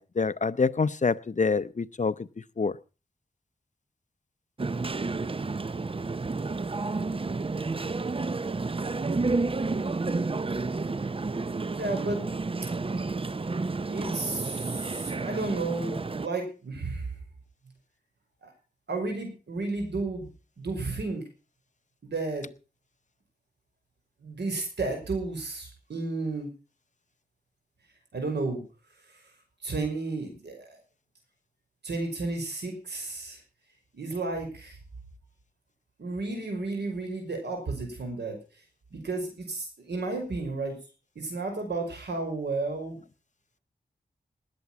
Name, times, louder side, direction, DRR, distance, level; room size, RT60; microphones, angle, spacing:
voice 1, 0.0-2.1 2.6-2.7, left 4 dB, 45° left, 0.7 m, -26 dB
sound 1, 4.6-16.3, right 3 dB, 30° right, 0.6 m, -31 dB
voice 2, 11.8-12.2 13.9-17.1 18.4-18.5 18.9-20.3 20.6-21.3 22.0-22.5 24.2-26.5 28.1-28.6 29.1-29.2 29.6-30.8 31.8-33.4 33.9-34.8 36.0-38.4 38.9-40.8 41.2-43.0, right 3 dB, 85° right, 5.6 m, -32 dB
19.5 x 8.5 x 5.9 m
wide cardioid pair, 70°, 17 cm